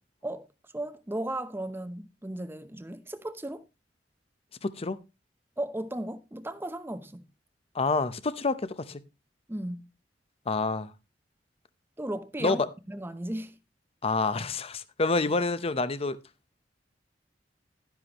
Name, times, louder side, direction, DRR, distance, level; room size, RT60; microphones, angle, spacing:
voice 1, 0.7-3.6 5.6-7.2 9.5-9.9 12.0-13.5, right 1 dB, 10° right, 0.8 m, -35 dB
voice 2, 4.6-5.0 7.7-9.0 10.5-10.9 12.4-12.7 14.0-16.2, left 3 dB, 35° left, 0.7 m, -28 dB
11.5 x 10.5 x 3.0 m
head